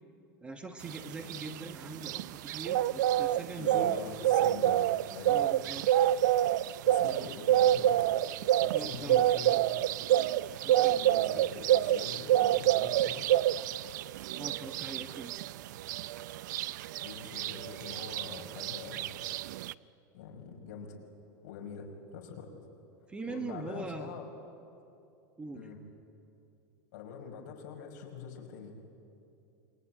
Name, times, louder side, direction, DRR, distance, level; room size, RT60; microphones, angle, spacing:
voice 1, 0.4-4.0 5.3-6.1 7.0-7.4 8.7-9.6 10.4-11.0 14.4-15.5 23.1-24.2 25.4-25.7, right 3 dB, 10° right, 6 dB, 1.3 m, -42 dB
sound 1, 0.9-19.7, right 13 dB, 65° right, 0.6 m, -28 dB
voice 2, 3.6-4.9 5.1-5.4 6.8-8.0 8.6-9.5 10.9-13.3 16.7-19.1 20.1-21.0 21.4-22.5 23.3-24.3 25.5-25.8 26.9-28.8, left 6 dB, 55° left, 2 dB, 5.6 m, -44 dB
27.5 x 23.5 x 9.0 m, 2.7 s
supercardioid pair, 160°, 10 cm